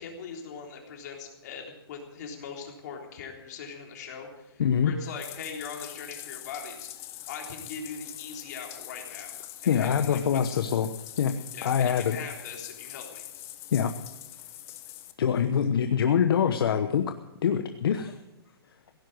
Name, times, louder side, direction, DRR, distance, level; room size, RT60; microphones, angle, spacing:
voice 1, 0.0-6.9 7.3-9.4 9.6-10.6 11.5-13.2, left 5 dB, 45° left, 1 dB, 3.7 m, -41 dB
voice 2, 4.6-4.9 9.7-10.9 11.2-11.3 11.6-12.2 13.7-13.9 15.2-17.1 17.4-18.2, left 8 dB, 65° left, 8 dB, 1.0 m, -24 dB
Bathtub (filling or washing), 5.0-15.1, left 13 dB, 20° left, 0.9 m, -43 dB
17.0 x 9.8 x 7.9 m, 0.96 s
hypercardioid pair, 160°, 13 cm